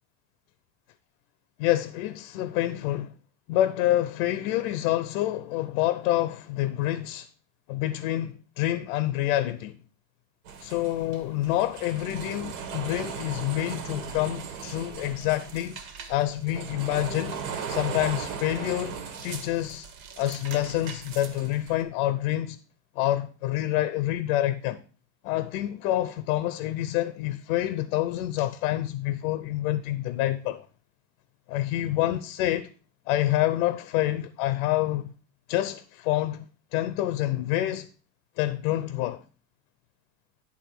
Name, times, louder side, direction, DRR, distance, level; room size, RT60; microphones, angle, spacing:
voice 1, 1.6-3.1 3.5-7.3 7.7-9.8 10.6-15.8 16.1-17.4 17.7-19.9 20.2-22.6 22.9-24.8 25.2-30.7 31.5-32.7 33.1-35.1 35.5-36.5 36.7-37.9 38.4-39.2, left 14 dB, 75° left, 0.8 m, -27 dB
sound 1, 10.5-21.8, right 6 dB, 75° right, 1.8 m, -38 dB
10.5 x 3.7 x 6.0 m
supercardioid pair, 145°, 43 cm